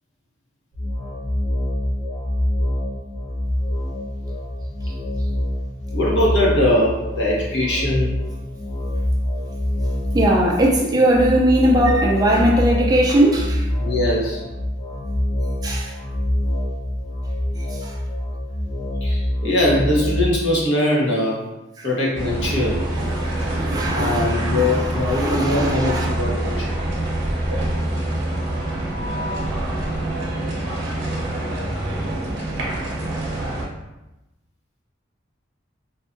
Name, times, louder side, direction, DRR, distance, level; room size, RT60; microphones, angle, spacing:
sound 1, 0.7-20.3, left 1 dB, 40° left, 0.7 m, -25 dB
voice 1, 5.9-8.2 13.8-14.4 19.0-21.4 21.8-22.8 23.9-26.7, left 1 dB, 70° left, -5 dB, 0.8 m, -21 dB
voice 2, 10.1-13.7 15.6-16.0 17.7-18.0 21.8-21.9 23.0-26.1, right 1 dB, 20° right, -1 dB, 0.3 m, -20 dB
sound 2, 22.1-33.6, right 1 dB, 70° right, 0.6 m, -25 dB
2.7 x 2.3 x 2.5 m, 0.98 s
head